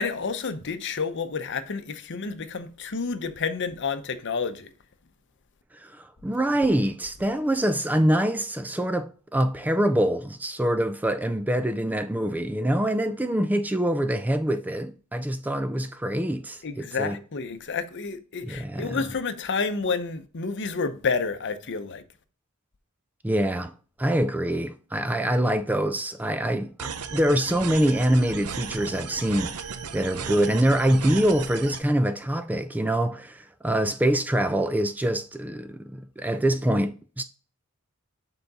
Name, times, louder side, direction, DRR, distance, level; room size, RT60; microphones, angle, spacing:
voice 1, 0.0-4.7 16.6-22.0, left 4 dB, 55° left, 0.7 m, -30 dB
voice 2, 5.7-17.2 18.4-19.1 23.2-23.7 24.0-29.6 29.9-37.2, right 1 dB, 10° right, 0.3 m, -25 dB
sound 1, 26.8-31.8, right 6 dB, 85° right, 0.7 m, -36 dB
6.9 x 3.9 x 4.0 m
head